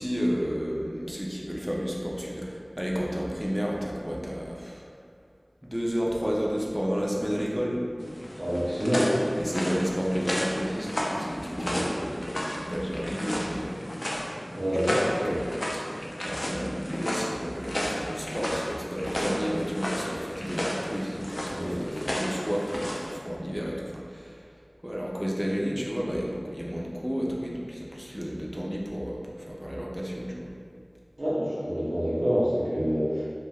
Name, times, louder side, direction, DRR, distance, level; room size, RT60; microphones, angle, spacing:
voice 1, 0.0-4.9 5.6-7.8 9.4-13.9 14.9-15.5 16.2-24.4 24.8-30.5, equal, 5° right, -3 dB, 0.4 m, -31 dB
sound 1, 8.0-23.1, equal, 55° left, 0.3 m, -33 dB
voice 2, 8.4-9.2 11.6-11.8 14.5-14.9 15.2-15.3 21.5-21.8 31.2-33.2, equal, 80° right, -9 dB, 0.7 m, -27 dB
2.3 x 2.2 x 3.4 m, 2.1 s
wide cardioid pair, 40°, 0 cm